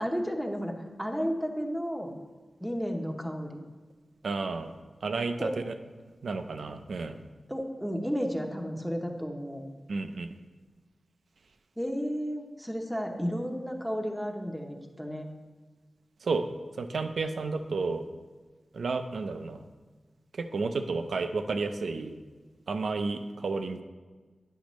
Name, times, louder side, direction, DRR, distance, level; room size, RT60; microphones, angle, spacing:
voice 1, 0.0-2.1 2.6-3.6 5.4-5.5 7.5-9.6 11.8-15.3, equal, ahead, 2 dB, 0.7 m, -32 dB
voice 2, 4.2-4.7 5.0-5.7 6.2-7.2 9.9-10.3 16.2-16.5 16.8-18.0 18.7-19.6 20.3-22.1 22.7-23.8, right 4 dB, 85° right, 8 dB, 0.5 m, -31 dB
10.0 x 6.2 x 3.1 m, 1.3 s
wide cardioid pair, 120°, 0 cm